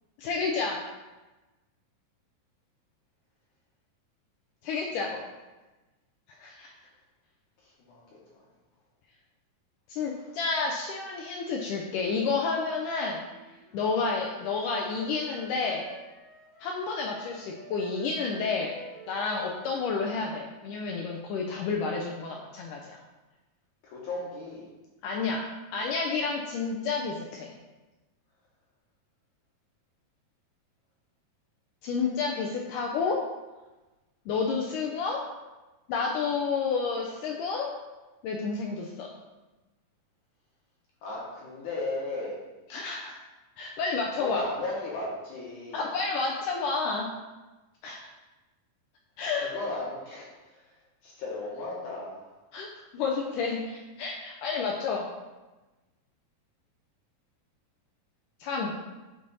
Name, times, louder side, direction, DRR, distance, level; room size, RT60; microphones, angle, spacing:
voice 1, 0.2-0.8 4.6-5.1 6.4-6.7 9.9-13.2 13.7-15.8 16.6-18.7 19.1-23.0 25.0-25.4 25.7-27.5 31.8-33.2 34.3-35.2 35.9-37.7 38.2-39.1 42.7-43.2 43.6-44.4 45.7-47.1 47.8-48.0 49.2-49.5 52.5-52.7 52.9-55.1 58.4-58.7, left 4 dB, 85° left, 0 dB, 1.8 m, -30 dB
voice 2, 7.6-8.2 23.8-24.6 41.0-42.4 44.2-45.9 49.3-50.6 51.0-52.2, left 2 dB, 65° left, -4 dB, 2.2 m, -35 dB
Wind instrument woodwind instrument, 13.2-20.9, right 4 dB, 15° right, 0.8 m, -50 dB
8.7 x 3.3 x 4.0 m, 1.1 s
omnidirectional pair, 4.3 m